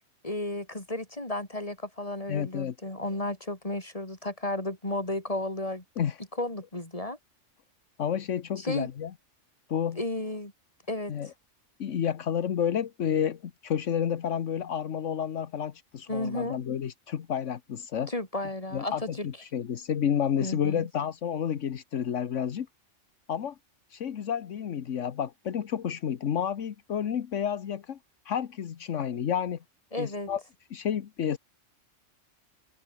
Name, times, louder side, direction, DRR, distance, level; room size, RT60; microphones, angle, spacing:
voice 1, 0.2-5.8 6.4-7.2 8.6-8.9 10.0-10.5 10.9-11.1 16.1-16.6 18.1-19.3 20.4-20.9 29.9-30.3, left 1 dB, 30° left, 4.4 m, -33 dB
voice 2, 2.3-2.7 6.0-6.2 8.0-9.1 9.7-10.0 11.1-11.3 11.8-18.1 18.7-22.7 23.3-23.6 23.9-28.0 28.2-29.6 30.0-30.4 30.7-31.4, left 8 dB, 80° left, 1.4 m, -30 dB
omnidirectional pair, 1.3 m